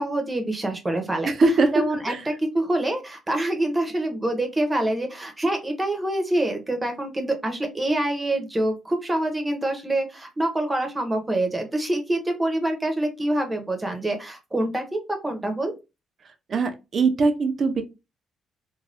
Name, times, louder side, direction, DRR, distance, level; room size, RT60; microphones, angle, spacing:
voice 1, 0.0-1.3 1.7-15.7, right 1 dB, 15° right, 5 dB, 0.9 m, -26 dB
voice 2, 1.2-2.2 16.5-17.8, right 3 dB, 45° right, 8 dB, 0.6 m, -22 dB
2.6 x 2.2 x 3.3 m, 0.26 s
cardioid pair, 90°, 0 cm